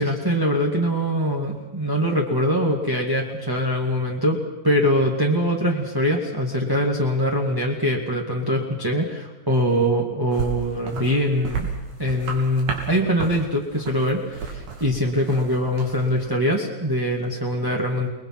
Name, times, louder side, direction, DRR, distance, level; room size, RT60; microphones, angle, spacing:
voice 1, 0.0-4.4 4.6-11.7 12.0-18.1, equal, 10° right, -1 dB, 1.6 m, -23 dB
sound 1, 10.3-16.3, right 5 dB, 85° right, 4.7 m, -33 dB
30.0 x 21.0 x 6.0 m, 1.1 s
omnidirectional pair, 3.4 m